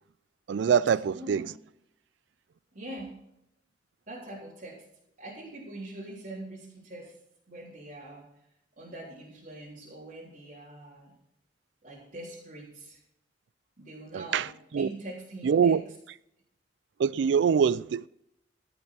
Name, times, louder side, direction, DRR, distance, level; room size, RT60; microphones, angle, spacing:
voice 1, 0.5-1.5 14.1-14.5 14.7-14.9 15.4-15.8 17.0-18.1, right 7 dB, 75° right, 0.3 m, -24 dB
voice 2, 1.1-1.5 2.7-3.2 4.1-4.8 5.2-7.2 7.5-8.3 8.8-11.1 11.8-13.0 13.8-15.8, right 1 dB, 45° right, 3.6 m, -43 dB
15.5 x 6.8 x 5.8 m
head